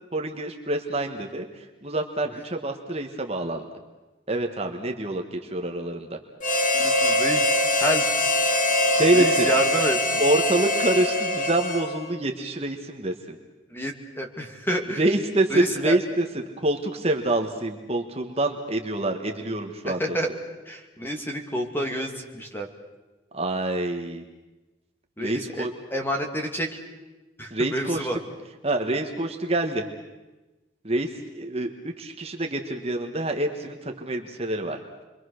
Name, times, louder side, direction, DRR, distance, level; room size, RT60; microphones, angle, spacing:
voice 1, 0.1-3.7 4.3-6.2 8.9-9.5 10.2-13.4 15.0-16.3 16.6-20.0 23.3-24.2 25.2-25.7 27.5-28.1 28.6-29.8 30.8-34.8, right 2 dB, 30° right, 3 dB, 1.4 m, -26 dB
Harmonica, 6.4-12.2, left 1 dB, 40° left, 1.9 m, -23 dB
voice 2, 6.7-8.1 9.1-10.2 13.7-15.0 15.5-16.0 19.8-20.3 20.7-22.7 25.2-26.7 27.4-28.2, equal, 10° left, 3 dB, 2.5 m, -29 dB
29.5 x 23.5 x 6.5 m, 1.1 s
head